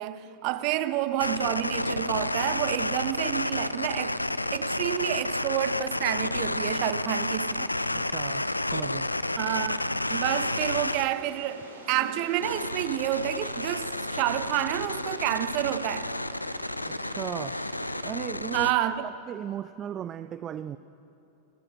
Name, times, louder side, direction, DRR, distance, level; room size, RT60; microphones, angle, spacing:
voice 1, 0.0-4.2 4.5-7.7 9.4-16.1 18.5-19.0, right 13 dB, 45° right, 0.8 m, -29 dB
sound 1, 1.2-11.1 12.4-18.7, left 1 dB, 85° left, 0.5 m, -31 dB
voice 2, 7.9-8.4 8.7-9.1 16.9-17.6 17.9-18.7 19.0-20.8, right 10 dB, 30° right, 0.4 m, -36 dB
sound 2, 10.0-18.2, right 2 dB, 75° right, 2.8 m, -45 dB
26.0 x 15.0 x 6.5 m
figure-of-eight pair, 90°, 0 cm